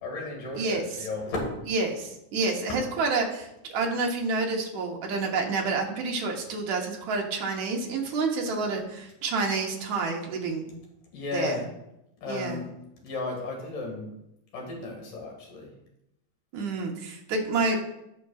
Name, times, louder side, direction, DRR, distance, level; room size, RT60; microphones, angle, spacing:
voice 1, 0.0-1.6 2.7-2.8 11.1-11.7 12.2-12.7 13.0-14.1 14.5-15.7, left 3 dB, 75° left, 0 dB, 3.6 m, -34 dB
voice 2, 0.5-1.1 1.7-10.7 11.3-11.6 12.3-12.6 16.5-17.8, right 3 dB, 65° right, 1 dB, 2.4 m, -29 dB
16.5 x 6.1 x 2.4 m, 0.85 s
omnidirectional pair, 3.8 m